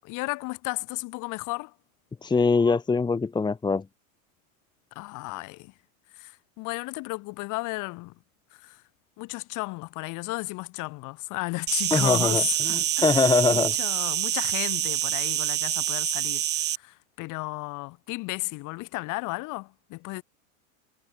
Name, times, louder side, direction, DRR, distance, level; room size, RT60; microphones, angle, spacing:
voice 1, 0.0-1.7 5.0-5.7 6.2-8.1 8.6-8.8 9.2-16.4 16.8-20.2, left 24 dB, 45° left, 7.4 m, -34 dB
voice 2, 2.2-3.8 11.9-13.7, left 4 dB, 10° left, 1.6 m, -23 dB
Insect, 11.7-16.8, right 12 dB, 25° right, 1.1 m, -26 dB
supercardioid pair, 135°, 42 cm